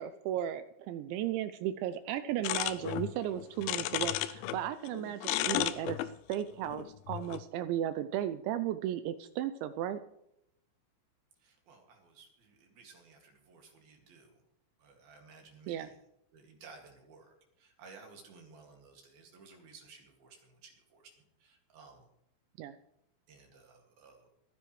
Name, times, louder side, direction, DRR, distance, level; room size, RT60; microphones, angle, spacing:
voice 1, 0.0-6.0 6.3-10.0 15.7-15.9 22.6-22.8, right 11 dB, 85° right, 11 dB, 2.6 m, -35 dB
sound 1, 2.4-4.6 4.9-7.4, left 15 dB, 80° left, 2.8 m, -34 dB
voice 2, 11.4-14.4 14.8-16.0 16.3-22.1 23.3-24.3, right 4 dB, 55° right, 2 dB, 3.6 m, -56 dB
27.0 x 10.5 x 3.2 m, 0.77 s
omnidirectional pair, 5.8 m